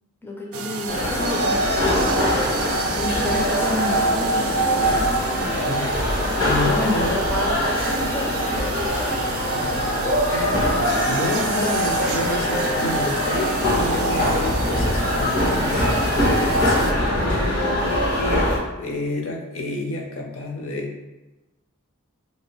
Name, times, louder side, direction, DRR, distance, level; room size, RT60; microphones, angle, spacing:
voice 1, 0.2-5.1 6.6-9.1, left 1 dB, 10° left, -2 dB, 0.4 m, -31 dB
sound 1, 0.5-16.9, right 3 dB, 65° right, 0.4 m, -27 dB
sound 2, 0.9-18.6, left 1 dB, 80° left, 1.2 m, -23 dB
voice 2, 5.5-7.2 9.4-9.9 10.3-16.4 16.6-20.9, left 2 dB, 65° left, 1 dB, 0.6 m, -29 dB
3.1 x 2.7 x 3.0 m, 1.0 s
head